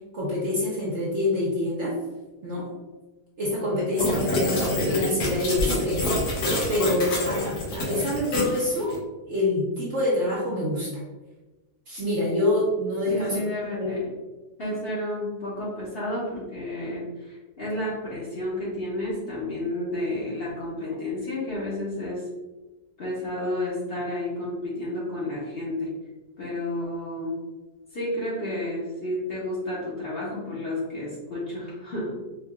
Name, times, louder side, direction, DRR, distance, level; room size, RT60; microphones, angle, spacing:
voice 1, 0.1-2.0 2.4-2.7 3.4-6.1 6.7-9.0 9.3-11.0 11.9-13.5 13.8-14.0, left 1 dB, 55° right, -5 dB, 0.9 m, -26 dB
sound 1, 4.0-9.0, left 1 dB, 75° left, 1.4 m, -27 dB
voice 2, 13.1-14.0 14.6-22.3 23.0-25.9 26.4-27.3 27.9-32.1, left 1 dB, 45° left, -7 dB, 1.0 m, -31 dB
4.7 x 2.7 x 2.3 m, 1.1 s
omnidirectional pair, 1.8 m